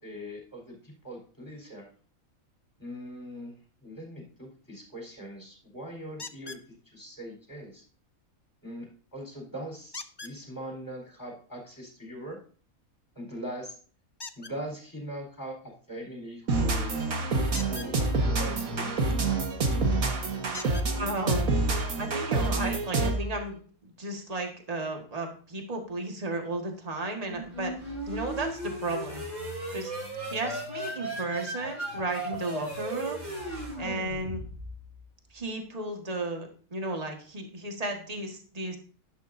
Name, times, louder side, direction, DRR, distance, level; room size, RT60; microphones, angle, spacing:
voice 1, 0.0-1.9 2.8-3.5 3.8-6.6 6.9-7.8 8.6-12.4 13.2-13.7 14.4-17.0 17.7-19.0, equal, 15° left, 0 dB, 4.3 m, -41 dB
sound 1, 6.2-6.7 9.9-10.4 14.2-14.5 17.5-17.9 19.6-19.7 20.5-20.9 21.9-22.0 22.5-22.6, left 4 dB, 35° left, 0.4 m, -41 dB
sound 2, 16.5-23.3, right 3 dB, 80° right, 1.9 m, -27 dB
voice 2, 20.9-21.5 22.0-27.7 28.1-29.2 29.7-29.9 30.3-33.2 33.8-34.4 35.3-38.8, right 2 dB, 25° right, 3 dB, 1.8 m, -34 dB
sound 3, 27.2-34.8, right 1 dB, 60° right, 5.0 m, -36 dB
12.0 x 11.5 x 2.7 m, 0.42 s
omnidirectional pair, 1.5 m